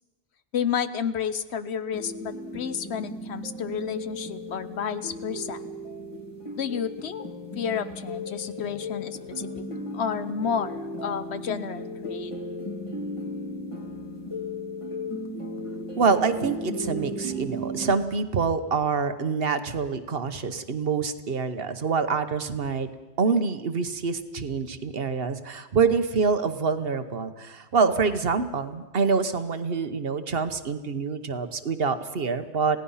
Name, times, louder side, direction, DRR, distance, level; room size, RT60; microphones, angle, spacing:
voice 1, 0.5-5.6 6.6-7.3 7.5-9.6 9.9-12.3, left 7 dB, 80° left, 12 dB, 1.2 m, -31 dB
sound 1, 1.9-17.9, left 1 dB, 30° left, 2.9 m, -35 dB
voice 2, 16.0-22.9 23.2-32.8, right 5 dB, 60° right, 10 dB, 1.3 m, -26 dB
27.5 x 17.0 x 5.6 m, 1.2 s
omnidirectional pair, 1.1 m